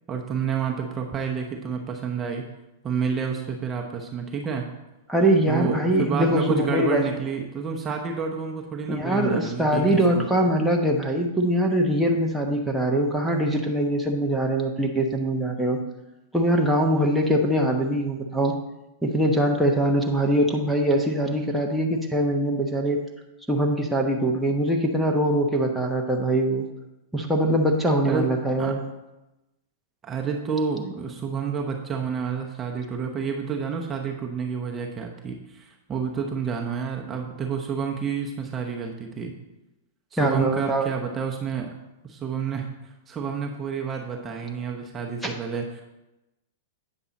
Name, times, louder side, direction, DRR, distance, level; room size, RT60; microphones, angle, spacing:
voice 1, 0.1-2.5 2.8-4.7 5.5-9.8 10.1-10.3 28.1-28.3 28.6-28.7 30.0-39.3 40.2-41.7 42.0-45.8, right 6 dB, 20° right, 1 dB, 1.0 m, -29 dB
voice 2, 5.1-7.0 8.9-15.8 16.3-18.5 19.0-23.0 23.5-26.6 27.1-28.8 40.2-40.9 45.2-45.3, right 1 dB, ahead, -1 dB, 1.1 m, -22 dB
8.7 x 7.1 x 4.1 m, 0.97 s
hypercardioid pair, 120°, 0 cm